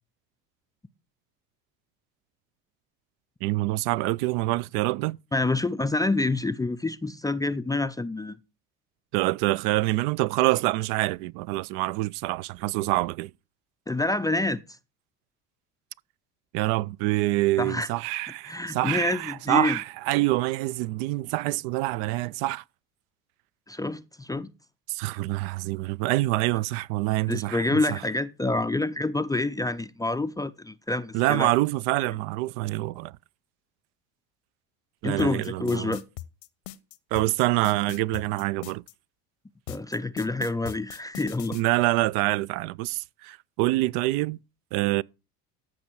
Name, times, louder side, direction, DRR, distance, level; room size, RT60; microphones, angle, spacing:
voice 1, 3.4-5.2 9.1-13.3 16.5-22.6 24.9-28.0 31.1-33.2 35.0-35.9 37.1-38.8 41.5-44.4 44.7-45.0, right 18 dB, 65° right, 0.5 m, -26 dB
voice 2, 5.3-8.4 13.9-14.6 17.6-17.9 18.5-19.8 23.7-24.5 27.3-31.5 35.0-36.0 39.7-41.6, left 2 dB, 10° left, 0.4 m, -27 dB
sound 1, 35.2-38.9 39.7-41.6, left 15 dB, 75° left, 1.0 m, -40 dB
14.0 x 6.1 x 4.6 m
hypercardioid pair, 75°, 45 cm